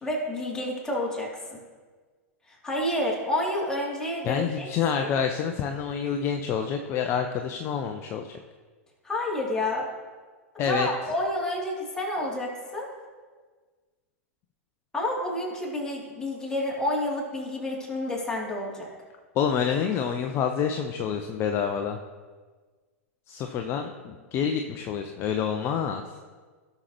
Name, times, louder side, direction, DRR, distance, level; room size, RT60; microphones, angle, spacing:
voice 1, 0.0-1.6 2.5-4.7 4.9-5.1 9.0-9.9 10.6-12.9 14.9-18.9, left 1 dB, 10° left, -4 dB, 2.9 m, -29 dB
voice 2, 4.2-8.3 10.6-10.9 19.3-22.0 23.3-26.1, left 7 dB, 35° left, 5 dB, 0.7 m, -28 dB
16.5 x 6.7 x 3.1 m, 1.4 s
figure-of-eight pair, 95°, 8 cm